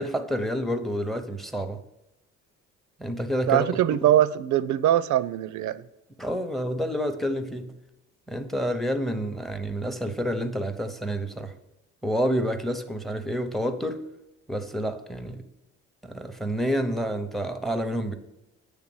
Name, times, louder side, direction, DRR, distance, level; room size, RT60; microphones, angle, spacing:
voice 1, 0.0-1.8 3.0-3.7 4.0-4.1 6.2-7.7 8.3-11.5 12.0-14.0 14.5-15.4 16.0-18.2, equal, ahead, 0.7 m, -28 dB
voice 2, 3.5-5.8, right 12 dB, 75° right, 0.5 m, -22 dB
8.1 x 3.4 x 6.1 m
cardioid pair, 90°, 30 cm